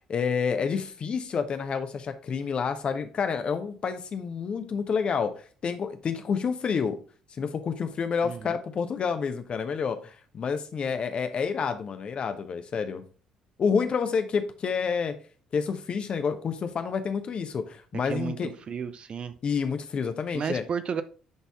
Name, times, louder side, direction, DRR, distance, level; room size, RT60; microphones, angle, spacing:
voice 1, 0.1-5.3 5.6-7.0 7.4-13.0 13.6-15.1 15.5-18.5 19.4-20.6, left 6 dB, 40° left, 8 dB, 1.1 m, -29 dB
voice 2, 8.2-8.5 18.1-18.4 18.7-19.3 20.3-21.0, right 6 dB, 40° right, 11 dB, 0.7 m, -32 dB
11.0 x 4.1 x 3.6 m, 0.39 s
figure-of-eight pair, 50°, 3 cm